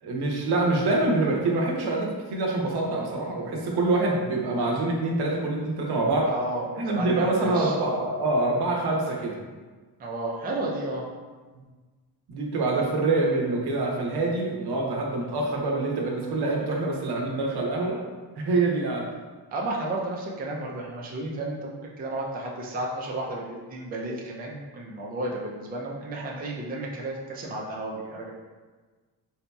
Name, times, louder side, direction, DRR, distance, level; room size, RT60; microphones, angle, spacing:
voice 1, 0.0-6.3 6.8-9.4 12.3-18.0 18.4-19.1, right 2 dB, 70° right, -1 dB, 0.8 m, -25 dB
voice 2, 6.3-7.8 10.0-11.0 19.5-28.3, right 1 dB, 25° right, -2 dB, 0.4 m, -32 dB
3.8 x 2.8 x 2.2 m, 1.4 s
cardioid pair, 140°, 41 cm